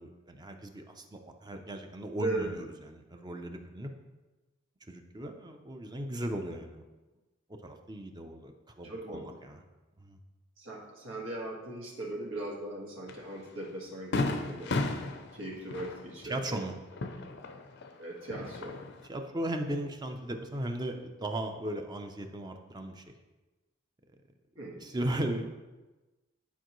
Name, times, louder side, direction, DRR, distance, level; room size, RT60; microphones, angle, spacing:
voice 1, 0.0-3.9 4.9-6.8 7.6-8.5 8.8-9.6 10.0-10.2 16.2-16.7 19.1-23.0 24.8-25.4, right 1 dB, 20° right, 4 dB, 0.5 m, -37 dB
voice 2, 2.2-2.5 8.8-9.3 10.6-14.8 15.3-16.7 18.0-18.8 24.6-24.8, right 2 dB, 85° right, -2 dB, 1.7 m, -38 dB
Fireworks, 13.1-13.2 13.6-13.7 14.1-17.9 18.2-19.1, left 2 dB, 60° left, 0.5 m, -34 dB
10.5 x 4.5 x 3.1 m, 1.2 s
head